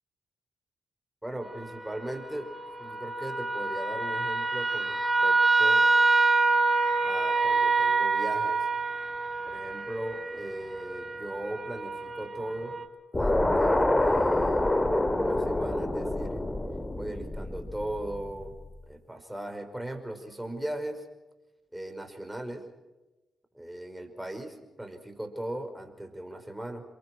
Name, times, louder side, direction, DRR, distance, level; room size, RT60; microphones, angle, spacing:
voice 1, 1.2-2.5 2.8-5.8 7.0-8.7 9.5-12.8 13.1-16.4 17.0-18.6 18.9-21.1 21.7-22.7 23.5-26.8, right 1 dB, 10° right, 6 dB, 5.4 m, -38 dB
sound 1, 1.4-12.8, right 3 dB, 25° right, 3.4 m, -27 dB
sound 2, 13.1-18.4, left 1 dB, 20° left, 2.6 m, -26 dB
28.0 x 23.0 x 6.1 m, 1.1 s
hypercardioid pair, 45°, 0 cm